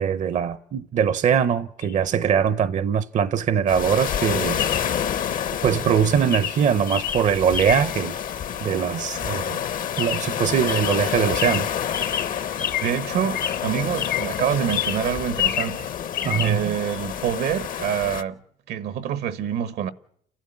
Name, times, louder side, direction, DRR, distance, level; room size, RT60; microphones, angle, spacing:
voice 1, 0.0-4.8 5.6-8.1 8.6-9.6 10.0-11.7 16.2-16.8, right 8 dB, 50° right, 0.7 m, -22 dB
Chirp tweet, 1.8-1.9 4.6-5.0 5.7-5.9 6.3-8.0 10.0-10.4 10.7-13.0 13.3-14.4 14.7-15.8 16.1-16.5, left 10 dB, 85° left, 3.1 m, -29 dB
sound 1, 3.7-18.2, left 9 dB, 55° left, 0.9 m, -29 dB
voice 2, 12.8-15.9 16.4-18.4 18.7-19.9, right 9 dB, 75° right, 1.2 m, -26 dB
29.5 x 12.0 x 8.5 m
cardioid pair, 110°, 17 cm